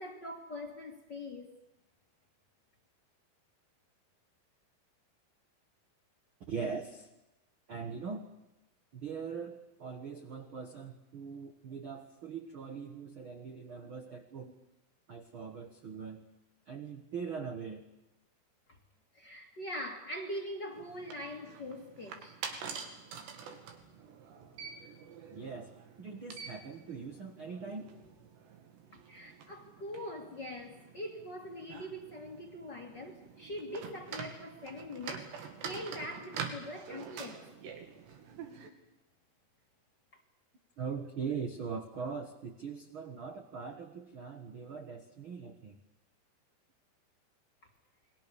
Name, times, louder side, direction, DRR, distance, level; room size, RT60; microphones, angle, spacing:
voice 1, 0.0-1.6 18.7-18.8 19.1-22.4 28.9-37.5 40.1-40.2, left 1 dB, 40° left, 1.6 m, -43 dB
voice 2, 6.5-7.1 7.7-8.2 8.9-14.5 15.1-16.2 16.7-17.8 25.3-25.7 26.0-27.9 40.8-45.8, right 5 dB, 60° right, 1.3 m, -41 dB
sound 1, 20.7-38.7, right 6 dB, 80° right, 4.6 m, -46 dB
29.5 x 21.5 x 7.1 m
omnidirectional pair, 4.9 m